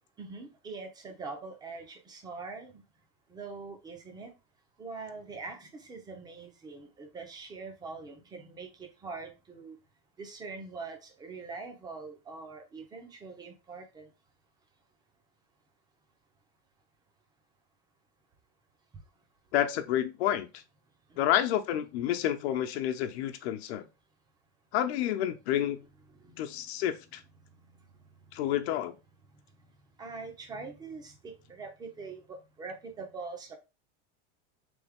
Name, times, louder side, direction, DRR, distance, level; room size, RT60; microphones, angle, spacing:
voice 1, 0.2-2.8 3.3-4.3 4.8-9.8 10.2-14.1 21.1-21.4 26.2-26.6 30.0-33.6, right 4 dB, 15° right, 0.6 m, -43 dB
voice 2, 19.5-20.5 21.2-23.9 24.7-25.8 26.4-27.2 28.3-29.0, left 11 dB, 85° left, 0.8 m, -29 dB
3.9 x 3.5 x 3.5 m
cardioid pair, 170°, 31 cm